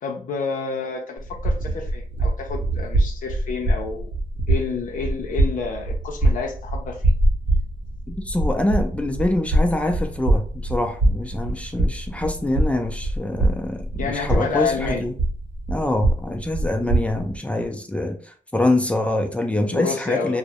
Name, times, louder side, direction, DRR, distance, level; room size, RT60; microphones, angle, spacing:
voice 1, 0.0-4.1 4.5-7.1 13.9-15.0 19.7-20.4, left 5 dB, 65° left, 3 dB, 0.5 m, -29 dB
sound 1, 1.2-17.4, right 1 dB, 55° right, 0.7 m, -24 dB
voice 2, 8.1-15.1 15.7-20.4, left 1 dB, 10° left, 4 dB, 0.4 m, -25 dB
2.2 x 2.0 x 2.7 m, 0.43 s
cardioid pair, 85°, 15 cm